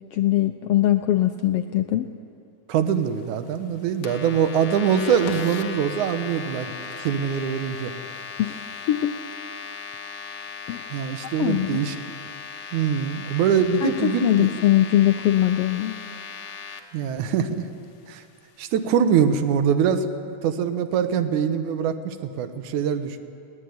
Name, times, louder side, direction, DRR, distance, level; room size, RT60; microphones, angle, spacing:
voice 1, 0.1-2.1 8.4-9.1 10.7-10.9 11.4-11.8 13.8-16.0, left 13 dB, 85° left, 7 dB, 1.3 m, -21 dB
voice 2, 2.7-6.7 7.0-7.9 10.9-12.0 12.7-14.5 16.9-17.7 18.1-18.2 18.6-20.1 20.4-23.2, right 7 dB, 80° right, 9 dB, 2.5 m, -23 dB
sound 1, 4.0-16.8, left 6 dB, 50° left, 1.3 m, -37 dB
21.0 x 18.0 x 9.6 m, 2.4 s
omnidirectional pair, 3.4 m